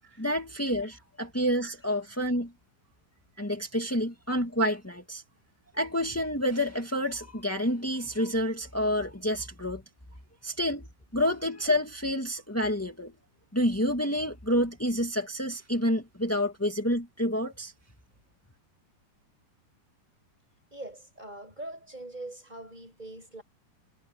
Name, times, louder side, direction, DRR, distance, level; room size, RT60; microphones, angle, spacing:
voice 1, 0.2-2.5 3.4-5.2 5.7-9.8 10.4-10.9 11.1-13.1 13.5-17.7, equal, 5° left, 1.1 m, -28 dB
voice 2, 20.7-23.4, right 2 dB, 10° right, 7.0 m, -43 dB
omnidirectional pair, 3.9 m